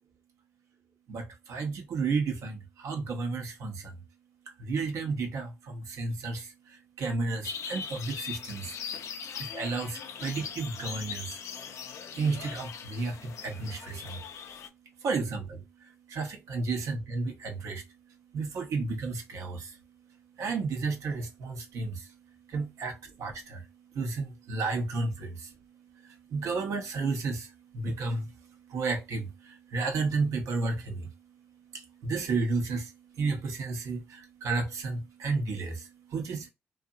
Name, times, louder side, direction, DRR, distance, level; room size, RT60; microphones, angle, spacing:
voice 1, 1.1-3.9 4.6-6.5 7.0-8.8 9.4-11.4 12.1-14.2 15.0-15.6 16.1-17.8 18.3-19.7 20.4-22.1 22.5-23.6 23.9-25.5 26.3-28.3 28.7-31.1 31.7-32.9 33.2-36.5, right 4 dB, 75° right, 0.9 m, -32 dB
sound 1, 7.4-14.7, left 7 dB, 75° left, 0.4 m, -40 dB
2.7 x 2.5 x 2.4 m
supercardioid pair, 55°, 5 cm